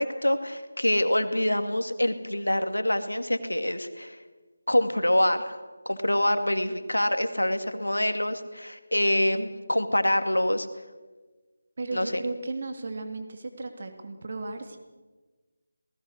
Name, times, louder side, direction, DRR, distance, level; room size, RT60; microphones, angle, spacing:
voice 1, 0.0-4.2 4.7-5.6 5.9-10.7 11.9-12.2, left 1 dB, 80° left, 8 dB, 2.2 m, -25 dB
voice 2, 11.8-14.8, right 3 dB, 45° right, 6 dB, 2.7 m, -35 dB
26.5 x 19.5 x 6.5 m, 1.3 s
figure-of-eight pair, 160°, 0 cm